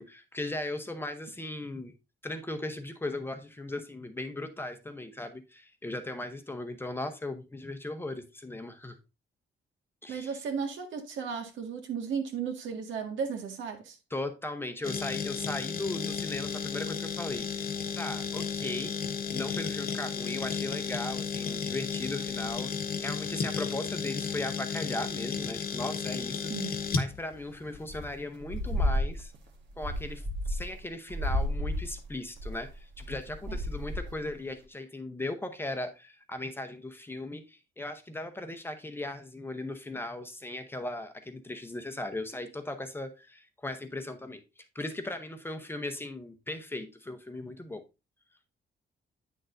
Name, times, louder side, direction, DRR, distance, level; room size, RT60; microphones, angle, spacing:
voice 1, 0.0-1.9 2.2-9.0 10.0-10.3 14.1-17.7 17.9-19.0 19.3-29.3 29.8-44.4 44.7-47.8, left 2 dB, 10° left, 0.7 m, -38 dB
voice 2, 10.1-14.0 26.5-26.8 33.5-33.6, right 6 dB, 90° right, 1.6 m, -35 dB
sound 1, 14.8-28.1, left 6 dB, 50° left, 1.0 m, -33 dB
sound 2, 27.9-28.1 28.4-29.4 29.7-30.8 31.1-34.3, left 1 dB, 70° right, 1.5 m, -32 dB
9.1 x 6.5 x 2.5 m
wide cardioid pair, 170°, 19 cm